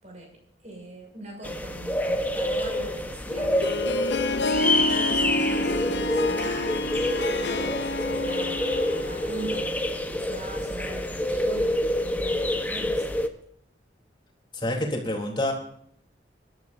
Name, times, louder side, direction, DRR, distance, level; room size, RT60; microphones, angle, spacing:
voice 1, 0.6-3.9 4.4-8.6 9.0-13.1, right 1 dB, 40° right, 1 dB, 6.3 m, -41 dB
sound 1, 1.4-13.3, left 1 dB, 10° left, 1.1 m, -27 dB
Harp, 3.3-9.8, left 2 dB, 75° left, 0.7 m, -29 dB
voice 2, 14.5-15.5, left 1 dB, 25° left, 0 dB, 3.5 m, -27 dB
25.5 x 12.5 x 2.7 m, 0.69 s
head